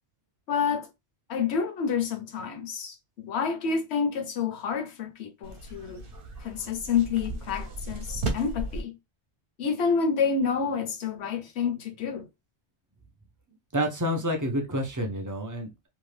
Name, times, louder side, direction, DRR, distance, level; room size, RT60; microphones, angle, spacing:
voice 1, 0.5-0.9 1.3-6.0 6.4-8.9 9.6-12.3, left 6 dB, 70° left, 0.9 m, -28 dB
sound 1, 5.4-8.8, right 2 dB, 60° right, 0.8 m, -35 dB
voice 2, 13.7-15.9, equal, 30° right, 0.4 m, -29 dB
2.7 x 2.3 x 3.2 m
omnidirectional pair, 1.2 m